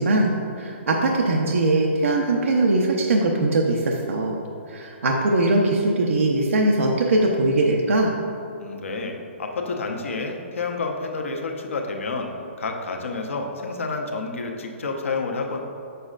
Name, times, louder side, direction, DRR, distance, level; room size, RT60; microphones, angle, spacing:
voice 1, 0.0-4.4 4.7-8.1, right 2 dB, 90° right, -1 dB, 0.6 m, -21 dB
voice 2, 8.6-12.3 12.6-15.6, left 3 dB, 85° left, 2 dB, 0.8 m, -29 dB
6.7 x 6.4 x 2.4 m, 2.7 s
hypercardioid pair, 150°, 7 cm